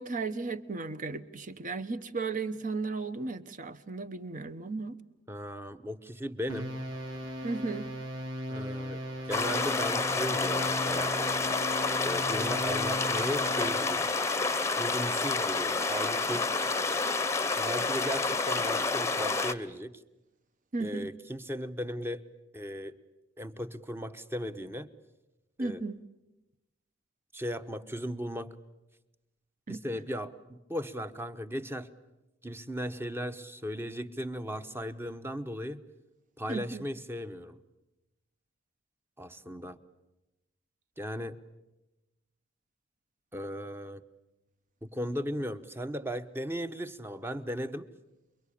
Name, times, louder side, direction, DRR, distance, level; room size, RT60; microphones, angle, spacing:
voice 1, 0.0-5.0 7.4-7.9 20.7-21.1 25.6-26.0 29.7-29.8 36.5-36.8, right 3 dB, 45° right, 12 dB, 1.1 m, -35 dB
voice 2, 5.3-6.7 8.5-9.0 9.3-11.1 12.0-14.2 14.8-16.5 17.6-19.9 20.8-22.2 22.5-23.0 23.4-24.9 25.6-25.8 27.3-28.6 29.7-31.9 32.4-35.8 36.4-37.6 39.2-39.8 41.0-41.4 43.3-44.0 44.8-47.9, equal, 10° right, 10 dB, 1.0 m, -37 dB
sound 1, 6.5-14.1, equal, 90° right, 4.2 m, -38 dB
sound 2, 9.3-19.5, left 3 dB, 15° left, 0.9 m, -29 dB
29.0 x 23.0 x 8.6 m, 0.99 s
head